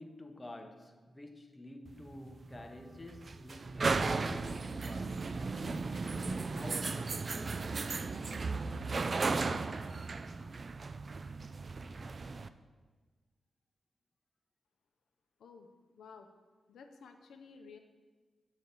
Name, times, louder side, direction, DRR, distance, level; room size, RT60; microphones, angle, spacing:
voice 1, 0.0-7.7, left 2 dB, 25° left, 0.8 m, -50 dB
sound 1, 1.9-12.5, right 4 dB, 50° right, 0.3 m, -36 dB
voice 2, 16.0-16.3 16.7-17.8, left 5 dB, 90° left, 0.5 m, -53 dB
7.6 x 4.1 x 6.8 m
cardioid pair, 55°, 0 cm